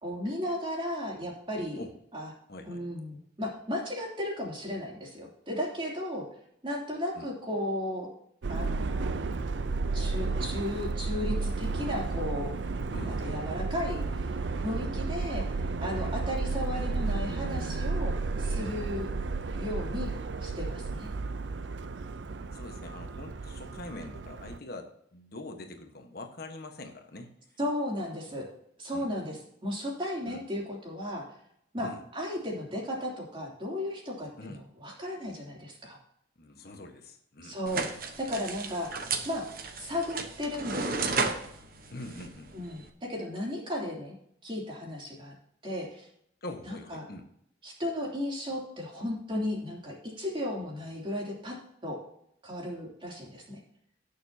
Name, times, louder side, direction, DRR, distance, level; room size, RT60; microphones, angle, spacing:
voice 1, 0.0-1.8 2.1-2.3 2.7-6.2 6.6-8.1 8.5-9.1 9.9-12.5 13.1-14.3 14.6-19.1 19.5-20.1 20.4-21.1 27.6-28.5 28.8-31.2 31.7-36.0 37.4-37.9 38.2-38.9 39.2-39.4 39.7-41.3 42.5-44.1 44.4-45.3 45.6-46.1 46.6-47.0 47.6-51.5 51.8-52.0 52.4-53.6, left 1 dB, 25° right, -3 dB, 3.0 m, -35 dB
voice 2, 2.5-2.8 7.1-7.3 12.9-13.2 22.5-27.6 28.9-29.1 30.3-30.4 31.8-32.0 34.4-34.6 36.4-37.6 41.9-42.5 46.4-47.3, left 2 dB, 55° left, 4 dB, 1.3 m, -44 dB
Subway metro underground, 8.4-24.6, right 3 dB, 70° right, 0.6 m, -32 dB
sound 1, 37.7-42.9, right 4 dB, 50° right, 1.1 m, -34 dB
18.0 x 6.8 x 2.8 m, 0.70 s
head